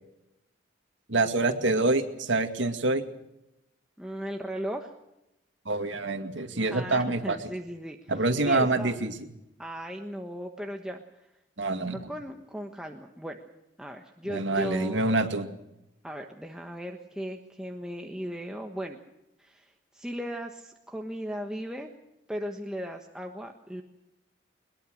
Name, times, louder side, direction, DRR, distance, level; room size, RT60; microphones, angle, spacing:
voice 1, 1.1-3.0 5.7-7.4 8.1-9.1 11.6-12.0 14.3-15.5, right 2 dB, 70° right, 7 dB, 2.2 m, -26 dB
voice 2, 4.0-4.9 6.7-9.0 9.6-11.0 11.9-13.4 13.8-15.1 16.0-19.0 19.4-21.9 22.3-23.8, equal, 5° right, 2 dB, 1.3 m, -37 dB
21.5 x 21.5 x 6.4 m, 0.90 s
head